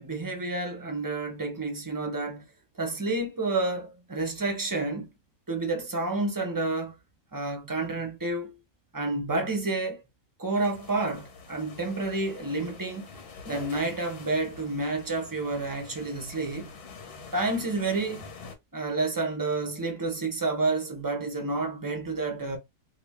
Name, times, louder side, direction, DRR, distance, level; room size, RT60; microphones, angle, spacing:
voice 1, 0.0-2.4 2.8-5.1 5.5-6.9 7.3-8.5 8.9-10.0 10.4-13.0 13.5-16.7 17.3-18.2 18.7-22.6, right 3 dB, 20° right, 0.5 m, -29 dB
sound 1, 10.5-18.6, left 4 dB, 90° left, 1.6 m, -46 dB
2.8 x 2.7 x 3.4 m
omnidirectional pair, 1.6 m